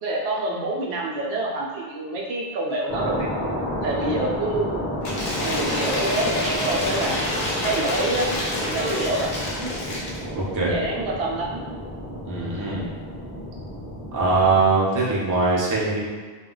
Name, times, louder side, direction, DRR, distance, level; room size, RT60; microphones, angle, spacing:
voice 1, 0.0-3.3 3.8-4.9 5.4-7.2 7.6-9.7 10.2-11.6, right 2 dB, 75° right, -2 dB, 0.8 m, -27 dB
sound 1, 2.9-14.7, equal, 15° left, 0.9 m, -31 dB
Cheering / Applause / Crowd, 5.0-10.2, left 1 dB, 50° left, 0.7 m, -27 dB
voice 2, 10.3-10.8 12.3-12.9 14.1-16.1, right 3 dB, 25° right, -5 dB, 0.4 m, -22 dB
2.2 x 2.2 x 3.7 m, 1.5 s
omnidirectional pair, 1.1 m